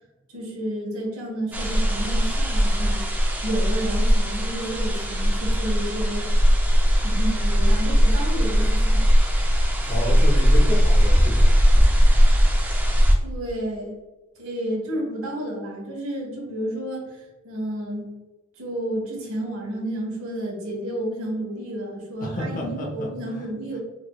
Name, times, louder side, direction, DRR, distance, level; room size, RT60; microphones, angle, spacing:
voice 1, 0.3-3.0 3.4-6.3 7.0-9.1 9.8-9.9 13.2-13.9 14.4-18.1 18.6-23.8, right 1 dB, 75° right, -2 dB, 1.2 m, -31 dB
sound 1, 1.5-13.2, equal, 10° right, 0.4 m, -19 dB
voice 2, 9.9-11.5 22.2-23.1 23.4-23.5, left 1 dB, 40° left, -1 dB, 0.8 m, -30 dB
4.2 x 3.3 x 2.2 m, 1.1 s
head